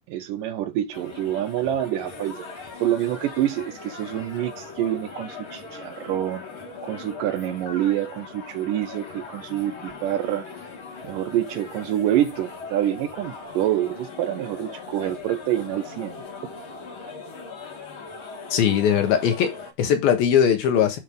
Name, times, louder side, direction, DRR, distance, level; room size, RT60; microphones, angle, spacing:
voice 1, 0.1-2.4 2.8-6.4 6.8-10.5 11.0-16.2, right 12 dB, 80° right, 2.0 m, -26 dB
sound 1, 0.9-19.7, left 4 dB, 45° left, 2.0 m, -40 dB
voice 2, 18.5-21.0, left 8 dB, 80° left, 3.2 m, -20 dB
10.0 x 3.4 x 5.1 m
omnidirectional pair, 4.3 m